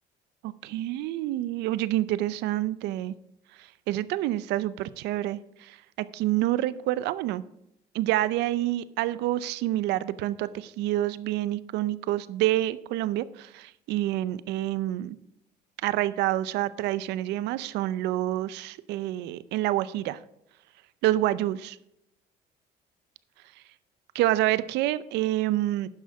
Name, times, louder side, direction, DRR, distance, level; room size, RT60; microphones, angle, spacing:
voice 1, 0.4-3.2 3.9-5.8 6.1-7.4 7.9-15.2 15.8-20.2 21.0-21.7 24.1-25.9, right 14 dB, 90° right, 17 dB, 0.6 m, -27 dB
11.0 x 5.7 x 6.0 m, 0.79 s
cardioid pair, 110°, 17 cm